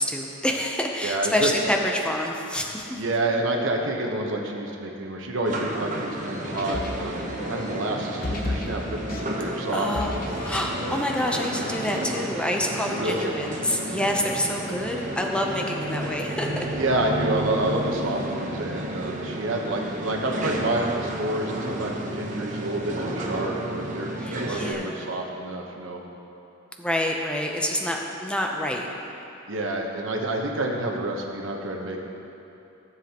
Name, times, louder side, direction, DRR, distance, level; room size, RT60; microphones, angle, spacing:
voice 1, 0.0-3.0 9.7-16.7 19.7-20.1 24.2-25.1 26.8-28.9, left 1 dB, 5° left, 1 dB, 0.6 m, -27 dB
voice 2, 1.0-1.5 2.9-9.9 12.9-13.2 16.7-26.0 29.5-32.1, right 2 dB, 75° right, 1 dB, 1.1 m, -28 dB
sound 1, 5.5-24.7, right 1 dB, 40° right, 1.0 m, -32 dB
sound 2, 6.3-12.3, left 1 dB, 50° left, 0.9 m, -35 dB
15.0 x 7.4 x 3.0 m, 2.8 s
head